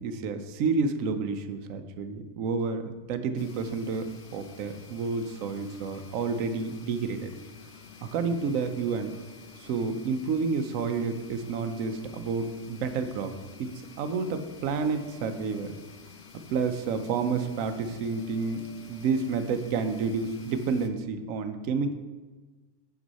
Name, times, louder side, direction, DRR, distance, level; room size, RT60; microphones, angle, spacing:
voice 1, 0.0-7.3 8.0-9.1 9.6-13.3 13.6-13.7 14.0-15.7 16.5-21.9, right 5 dB, 75° right, 8 dB, 1.0 m, -30 dB
sound 1, 3.4-20.9, left 5 dB, 65° left, 0.8 m, -50 dB
6.3 x 6.2 x 4.0 m, 1.3 s
omnidirectional pair, 1.4 m